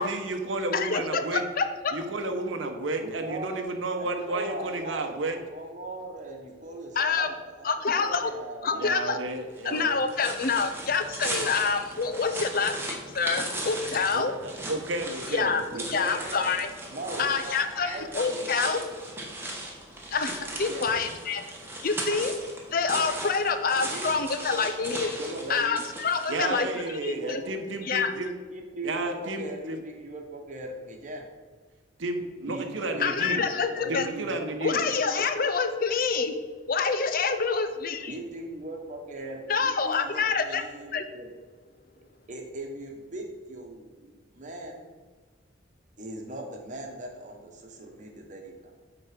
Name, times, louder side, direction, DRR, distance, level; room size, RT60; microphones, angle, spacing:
voice 1, 0.0-1.4 1.9-5.4 8.7-10.0 14.1-15.9 26.3-28.3 28.8-29.8 32.0-33.5 33.9-34.8, right 2 dB, 75° right, 5 dB, 0.9 m, -32 dB
voice 2, 0.7-1.9 7.0-7.3 7.6-8.3 8.6-9.2 9.6-14.3 15.3-15.6 15.9-16.7 17.2-18.8 20.1-21.4 21.8-22.4 22.7-25.2 25.5-26.7 27.0-27.4 27.8-28.1 33.0-34.1 34.6-38.1 39.5-40.6 40.9-41.1, left 5 dB, 45° left, 8 dB, 0.5 m, -27 dB
voice 3, 3.0-3.6 4.0-7.3 7.6-8.9 15.7-16.4 16.9-18.9 20.7-20.9 21.4-21.6 23.5-23.6 23.8-24.2 25.2-25.8 26.3-27.6 28.1-31.3 32.4-33.4 33.7-34.5 34.8-35.2 38.1-41.3 42.3-44.9 46.0-48.8, right 1 dB, 40° right, 2 dB, 1.1 m, -39 dB
sound 1, 9.6-26.8, right 2 dB, 10° right, 1.1 m, -37 dB
9.0 x 3.9 x 5.1 m, 1.4 s
head